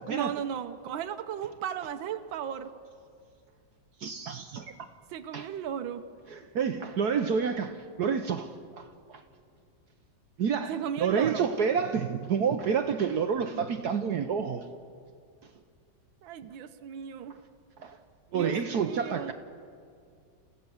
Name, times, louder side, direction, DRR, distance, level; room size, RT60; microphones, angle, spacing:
voice 1, 0.1-2.7 5.1-6.0 10.7-11.5 16.2-17.4 18.3-19.3, right 9 dB, 85° right, 8 dB, 1.6 m, -35 dB
voice 2, 4.0-4.7 5.3-5.5 6.3-7.7 8.0-9.2 10.4-10.7 11.0-14.6 17.8-17.9 18.3-19.3, right 6 dB, 60° right, 7 dB, 1.3 m, -29 dB
30.0 x 16.0 x 7.1 m, 2.3 s
omnidirectional pair, 2.1 m